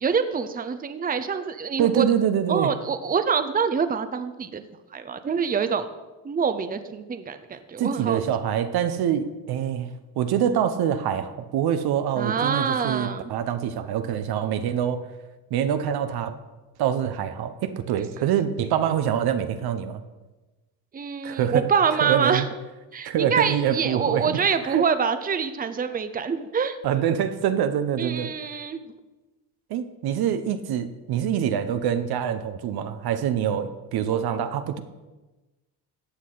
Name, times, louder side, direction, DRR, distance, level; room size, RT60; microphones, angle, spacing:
voice 1, 0.0-2.0 2.5-4.6 4.9-5.9 6.2-8.2 12.2-13.3 20.9-22.4 22.9-26.8 28.0-28.8, right 6 dB, 20° right, 10 dB, 0.7 m, -25 dB
voice 2, 1.8-2.7 7.8-9.9 10.2-15.0 15.5-16.4 16.8-20.0 21.2-21.7 22.0-22.5 23.0-24.4 24.6-24.8 26.8-28.3 29.7-34.8, right 9 dB, 70° right, 9 dB, 1.0 m, -25 dB
14.0 x 8.2 x 4.0 m, 1.1 s
supercardioid pair, 85°, 39 cm